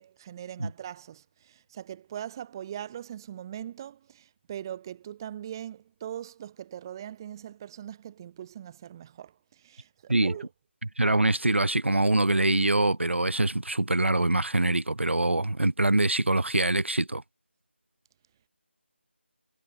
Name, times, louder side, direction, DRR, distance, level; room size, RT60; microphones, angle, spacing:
voice 1, 0.0-10.5, right 10 dB, 20° right, 4.5 m, -41 dB
voice 2, 11.0-17.2, right 2 dB, 75° right, 3.4 m, -24 dB
figure-of-eight pair, 165°, 7 cm